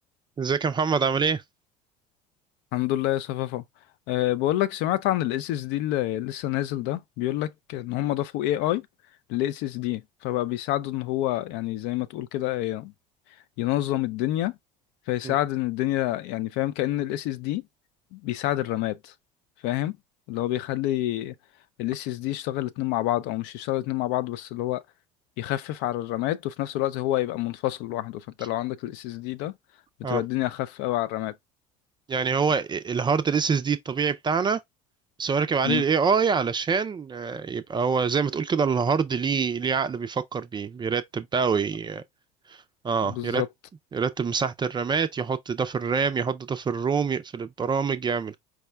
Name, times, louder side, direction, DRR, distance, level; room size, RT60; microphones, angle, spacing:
voice 1, 0.4-1.4 15.2-15.3 30.0-30.2 32.1-34.6 35.2-42.0 42.5-42.6 42.8-43.4 43.9-48.4, right 5 dB, 20° right, 0.4 m, -25 dB
voice 2, 2.7-3.6 4.1-8.9 9.3-12.9 13.6-14.6 15.1-17.6 18.1-19.1 19.6-20.0 20.3-21.3 21.8-24.8 25.4-29.5 30.1-31.3 35.6-35.8 43.0-43.5, left 14 dB, 60° left, 0.5 m, -28 dB
4.8 x 2.1 x 3.3 m
hypercardioid pair, 70°, 21 cm